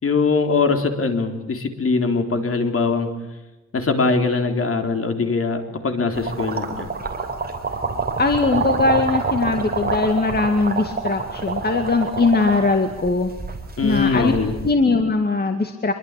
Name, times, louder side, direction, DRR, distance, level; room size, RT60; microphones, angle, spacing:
voice 1, 0.0-3.1 3.7-6.9 13.8-14.6, left 4 dB, 50° left, 6 dB, 3.9 m, -21 dB
sound 1, 6.1-14.7, right 4 dB, 35° right, 4.2 m, -27 dB
voice 2, 8.2-13.3 13.8-14.3 14.6-15.9, left 3 dB, 35° left, 6 dB, 2.2 m, -20 dB
25.5 x 23.5 x 8.5 m, 1.1 s
wide cardioid pair, 140°, 29 cm